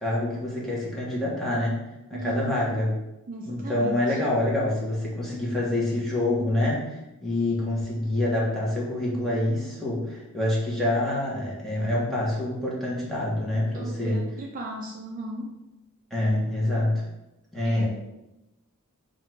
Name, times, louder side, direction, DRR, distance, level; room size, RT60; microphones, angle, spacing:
voice 1, 0.0-1.8 2.1-2.9 3.4-14.2 16.1-17.0 17.5-17.9, left 1 dB, ahead, -6 dB, 1.1 m, -26 dB
voice 2, 2.1-2.5 3.3-4.0 13.7-15.5 17.6-17.8, right 2 dB, 40° right, 0 dB, 0.4 m, -36 dB
3.6 x 2.5 x 4.4 m, 0.93 s
head